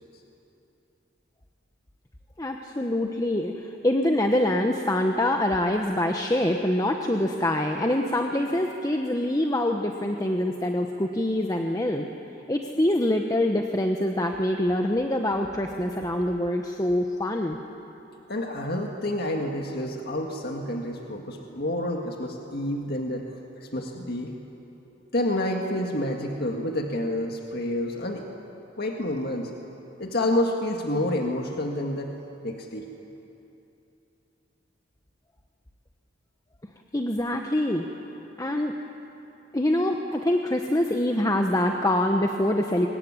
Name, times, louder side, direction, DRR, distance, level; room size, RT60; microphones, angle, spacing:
voice 1, 2.4-12.1 12.5-17.6 36.9-37.8 38.4-38.7 39.5-42.9, left 1 dB, 20° left, 3 dB, 1.0 m, -25 dB
voice 2, 18.3-23.3 23.6-24.3 25.1-28.2 28.8-29.5 30.0-32.1 32.4-32.9, left 1 dB, 55° left, 2 dB, 1.8 m, -28 dB
24.5 x 22.0 x 9.7 m, 3.0 s
head